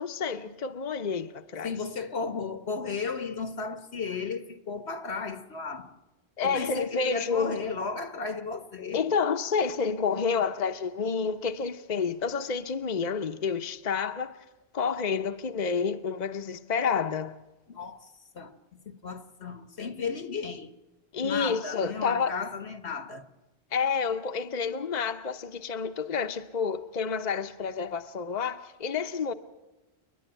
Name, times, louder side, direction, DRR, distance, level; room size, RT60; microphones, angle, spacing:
voice 1, 0.0-1.7 6.4-7.6 8.9-14.4 14.7-17.4 21.1-22.3 23.7-29.3, left 5 dB, 45° left, 1.0 m, -29 dB
voice 2, 1.6-5.9 6.4-9.0 17.7-18.5 18.9-20.7 21.2-23.2, left 5 dB, 85° left, 1.8 m, -34 dB
30.0 x 11.0 x 9.1 m
omnidirectional pair, 1.1 m